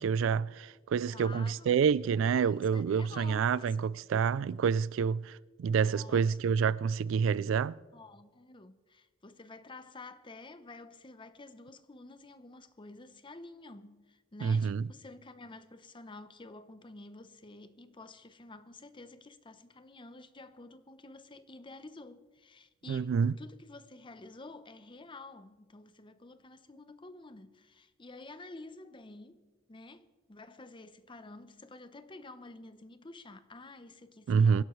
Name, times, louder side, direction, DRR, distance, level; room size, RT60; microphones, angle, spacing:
voice 1, 0.0-7.8 14.4-14.8 22.9-23.3 34.3-34.6, right 6 dB, 70° right, 0.3 m, -28 dB
voice 2, 1.1-3.8 5.9-6.5 7.9-29.4 29.7-34.6, left 2 dB, 25° left, 0.7 m, -50 dB
24.5 x 11.5 x 3.2 m
head